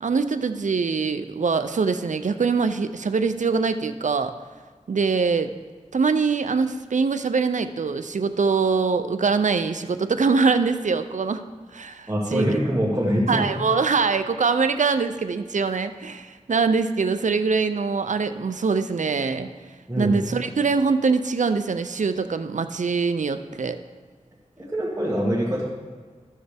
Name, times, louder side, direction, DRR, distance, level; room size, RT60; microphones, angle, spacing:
voice 1, 0.0-4.3 4.9-5.5 5.9-11.4 11.7-12.5 13.3-19.5 20.0-23.8, right 4 dB, 75° right, 9 dB, 0.5 m, -23 dB
voice 2, 12.1-13.5 19.9-20.2 24.6-25.6, equal, 20° right, -7 dB, 1.8 m, -24 dB
13.5 x 6.5 x 3.5 m, 1.5 s
wide cardioid pair, 65°, 13 cm